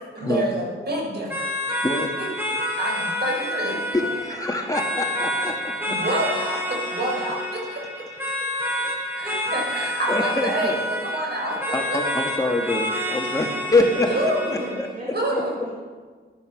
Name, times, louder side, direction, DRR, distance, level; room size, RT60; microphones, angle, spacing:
voice 1, 0.2-1.5 2.2-2.3 2.8-3.7 5.9-8.0 9.2-12.2 14.1-14.8 15.1-15.5, right 1 dB, 55° right, -2 dB, 5.4 m, -28 dB
sound 1, 1.3-14.9, left 1 dB, 10° right, 3.5 m, -28 dB
voice 2, 3.3-4.2 14.9-15.7, right 1 dB, 40° right, -2 dB, 2.8 m, -39 dB
voice 3, 3.9-5.8 9.3-9.4 10.1-10.8 11.7-14.9, left 2 dB, 15° left, 2 dB, 1.6 m, -25 dB
15.0 x 11.0 x 5.9 m, 1.5 s
cardioid pair, 80°, 20 cm